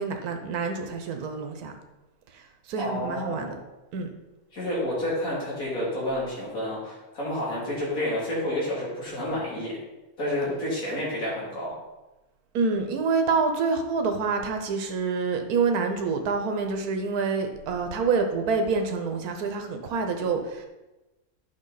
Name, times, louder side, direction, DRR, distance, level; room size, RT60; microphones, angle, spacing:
voice 1, 0.0-1.7 2.3-3.6 3.9-4.1 12.5-20.7, right 4 dB, 85° right, 5 dB, 1.3 m, -27 dB
voice 2, 2.8-3.5 4.5-9.8 10.2-11.7, left 1 dB, 70° left, -6 dB, 3.3 m, -29 dB
8.8 x 5.7 x 4.0 m, 1.1 s
omnidirectional pair, 1.6 m